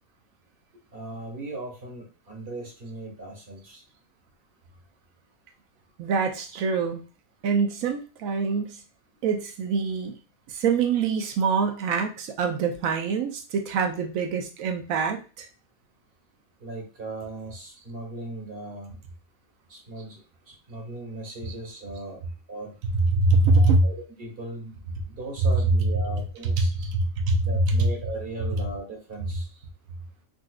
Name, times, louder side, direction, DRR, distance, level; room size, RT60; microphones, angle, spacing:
voice 1, 0.9-3.8 16.6-19.0 19.7-20.2 20.5-22.2 22.5-22.7 23.5-26.7 27.4-29.5, right 2 dB, 45° right, 0 dB, 1.1 m, -38 dB
voice 2, 6.0-7.0 7.4-8.8 9.2-10.2 10.5-15.5 21.5-21.6 23.1-23.8 26.6-27.4 27.8-27.9, right 4 dB, 80° right, 5 dB, 1.1 m, -24 dB
4.0 x 2.5 x 2.3 m, 0.34 s
omnidirectional pair, 1.4 m